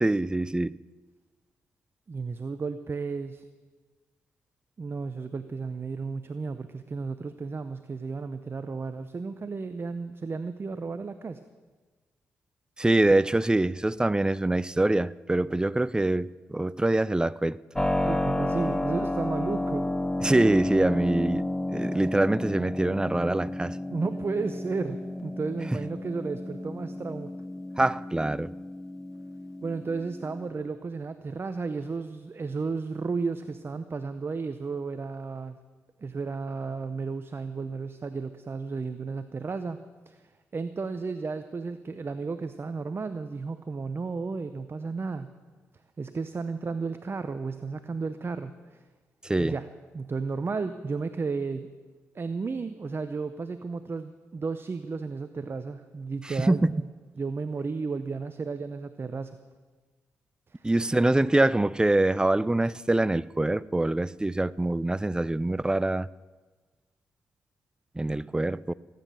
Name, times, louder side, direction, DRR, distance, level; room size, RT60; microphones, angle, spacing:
voice 1, 0.0-0.8 12.8-17.6 20.2-21.5 21.7-23.8 27.8-28.5 49.2-49.5 56.4-56.7 60.6-66.1 68.0-68.7, right 2 dB, 15° right, 0.5 m, -24 dB
voice 2, 2.1-3.4 4.8-11.4 18.0-19.9 23.9-27.3 29.6-35.6 36.0-39.8 40.1-45.3 46.0-48.8 49.4-51.7 52.1-56.9 57.2-59.4 60.5-60.7, right 4 dB, 40° right, 0.8 m, -33 dB
Keyboard (musical), 17.8-30.5, left 1 dB, 10° left, 1.1 m, -32 dB
18.0 x 9.5 x 6.8 m
supercardioid pair, 50°, 6 cm